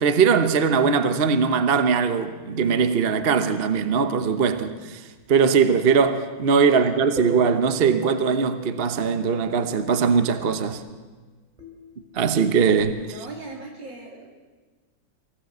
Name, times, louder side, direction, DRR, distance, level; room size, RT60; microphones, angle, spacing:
voice 1, 0.0-5.0 5.3-10.8 12.1-13.0, right 5 dB, 40° right, 0.9 m, -20 dB
sound 1, 7.2-9.4 11.6-13.1, right 3 dB, 20° right, 3.4 m, -39 dB
voice 2, 13.0-14.4, right 3 dB, 70° right, 4.0 m, -39 dB
24.0 x 16.5 x 8.0 m
omnidirectional pair, 2.1 m